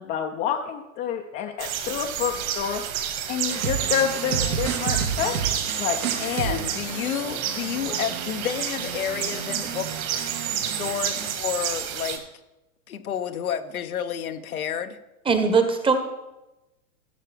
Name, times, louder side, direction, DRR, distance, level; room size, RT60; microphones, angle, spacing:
voice 1, 0.0-2.8 3.3-5.3 5.8-6.0 6.4-6.6 7.9-8.0, left 9 dB, 25° left, 3 dB, 0.6 m, -28 dB
sound 1, 1.6-12.2, right 9 dB, 50° right, 1.9 m, -30 dB
sound 2, 3.5-11.3, right 7 dB, 75° right, 1.6 m, -32 dB
voice 2, 6.2-9.9 10.5-12.2 12.9-15.0, left 9 dB, 75° left, 8 dB, 0.9 m, -30 dB
voice 3, 15.3-15.9, right 5 dB, 10° right, 7 dB, 1.0 m, -20 dB
16.5 x 6.6 x 3.4 m, 1.0 s
hypercardioid pair, 105°, 43 cm